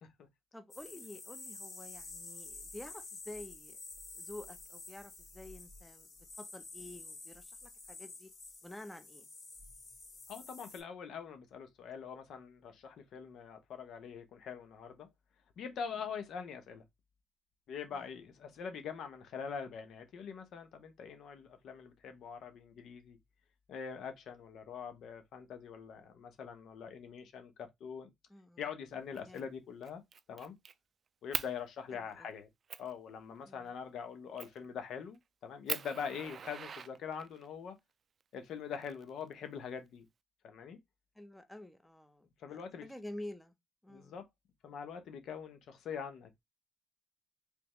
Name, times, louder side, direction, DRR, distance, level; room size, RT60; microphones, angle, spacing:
voice 1, 0.5-3.8 4.1-6.1 6.4-8.3 8.6-9.3 17.9-18.0 28.3-28.6 29.2-29.4 31.9-32.3 33.4-33.6 41.2-43.5 43.8-44.2, left 1 dB, 5° left, 0.8 m, -49 dB
sound 1, 0.7-10.8, left 3 dB, 50° left, 2.6 m, -50 dB
voice 2, 10.3-15.1 15.6-16.8 17.7-23.2 23.7-28.1 28.6-30.0 30.3-30.5 31.2-32.5 32.8-37.7 38.3-40.0 40.4-40.8 42.4-42.9 43.9-44.2 44.6-46.3, left 6 dB, 75° left, 0.9 m, -43 dB
Fire, 29.1-29.4 29.8-30.7 31.3-31.5 32.1-32.2 32.7-32.9 34.4-34.7 35.1-35.2 35.7-37.5 38.5-39.5, right 6 dB, 50° right, 0.3 m, -41 dB
3.5 x 3.2 x 3.0 m
cardioid pair, 90°, 0 cm